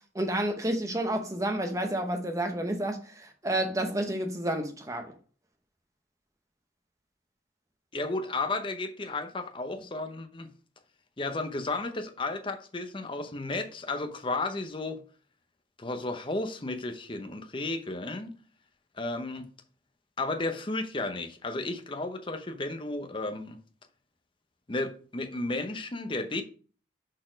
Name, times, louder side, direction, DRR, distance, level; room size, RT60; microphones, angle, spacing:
voice 1, 0.1-5.1, right 1 dB, 15° right, 0.9 m, -30 dB
voice 2, 7.9-10.5 11.2-15.0 15.8-18.4 19.0-19.5 20.2-23.6 24.7-26.4, left 2 dB, 25° left, 0.7 m, -33 dB
6.4 x 4.1 x 5.0 m
head